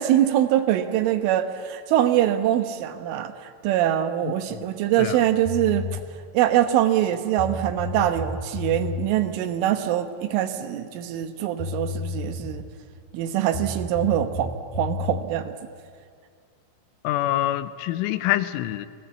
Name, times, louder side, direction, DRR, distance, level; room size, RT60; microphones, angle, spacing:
voice 1, 0.0-6.0 6.3-12.7 13.1-15.6, right 12 dB, 80° right, 9 dB, 3.6 m, -23 dB
voice 2, 4.2-4.7 5.0-5.2 17.0-18.9, left 14 dB, 85° left, 13 dB, 3.2 m, -26 dB
sound 1, 5.4-6.0 7.0-7.1 7.4-9.1 11.2-11.3 11.6-12.8 13.5-15.2, left 4 dB, 55° left, 0.5 m, -32 dB
28.5 x 19.5 x 8.2 m, 2.1 s
omnidirectional pair, 5.6 m